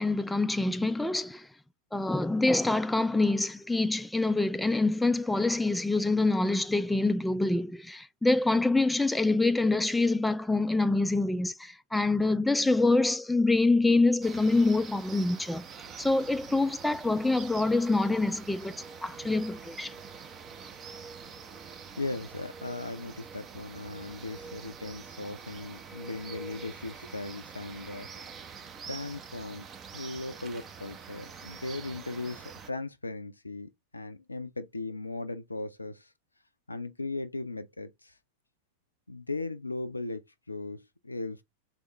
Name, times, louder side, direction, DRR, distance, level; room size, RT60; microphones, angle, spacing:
voice 1, 0.0-1.5 1.9-15.6 16.0-18.8 19.0-19.9, left 2 dB, 5° left, 0.3 m, -26 dB
sound 1, 14.2-32.7, right 6 dB, 25° right, 0.7 m, -45 dB
voice 2, 21.7-28.1 28.9-29.7 29.9-36.1 36.7-38.1 39.1-41.4, left 2 dB, 80° left, 0.4 m, -38 dB
4.1 x 3.5 x 2.9 m
figure-of-eight pair, 90°, 0 cm